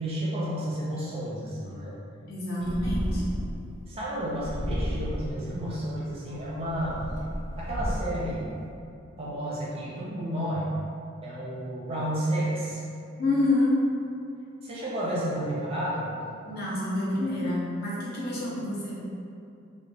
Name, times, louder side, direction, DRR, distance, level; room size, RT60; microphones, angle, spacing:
voice 1, 0.0-2.0 2.6-3.3 3.9-7.0 7.6-8.5 9.2-10.7 11.2-12.8 14.6-16.1 18.4-18.5, right 1 dB, 25° right, -7 dB, 0.5 m, -31 dB
voice 2, 2.3-3.2 13.2-13.8 16.4-19.0, left 2 dB, 45° left, -7 dB, 0.6 m, -27 dB
Purr, 2.6-3.7 4.4-5.5 6.2-8.3, equal, 60° left, 1.0 m, -32 dB
2.3 x 2.1 x 3.3 m, 2.5 s
head